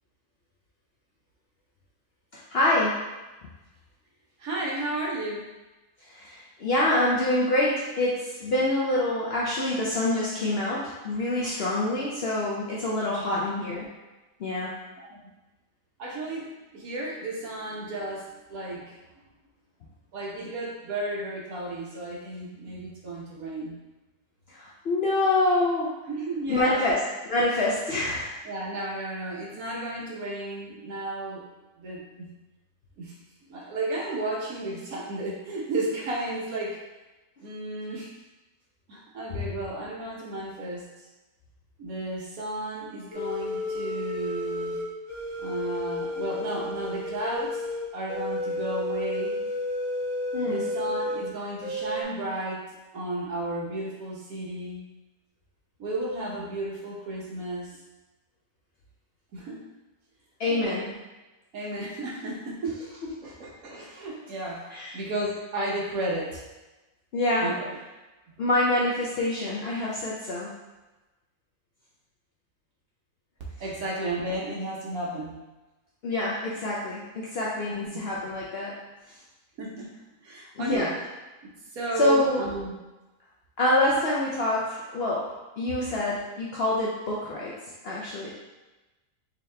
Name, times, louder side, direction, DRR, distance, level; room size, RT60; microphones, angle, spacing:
voice 1, 2.3-2.9 6.1-13.9 14.4-14.7 24.5-25.9 26.5-27.0 27.3-28.3 50.3-50.6 60.4-60.9 63.2-63.3 64.7-65.0 67.1-67.5 68.4-70.5 76.0-78.7 80.6-80.9 82.0-82.4 83.6-85.2 85.6-87.5 87.8-88.3, left 1 dB, 85° left, -5 dB, 0.5 m, -26 dB
voice 2, 4.4-5.5 13.1-13.4 15.0-15.2 16.0-19.0 20.1-23.8 26.1-27.0 28.4-31.4 31.8-32.3 33.0-33.2 33.5-36.8 37.4-38.1 38.9-41.1 41.8-44.8 45.4-47.7 47.9-49.4 50.4-52.6 52.9-54.8 55.8-57.8 59.3-59.6 60.5-61.0 61.5-62.9 63.2-64.7 64.9-66.4 67.4-67.8 73.6-75.4 77.7-77.9 79.6-79.9 80.2-80.9 81.7-82.7, right 2 dB, 60° right, -3 dB, 1.2 m, -33 dB
sound 1, 43.1-51.2 51.6-52.0, left 1 dB, 50° left, 1.2 m, -31 dB
3.9 x 2.9 x 3.2 m, 1.1 s
omnidirectional pair, 1.8 m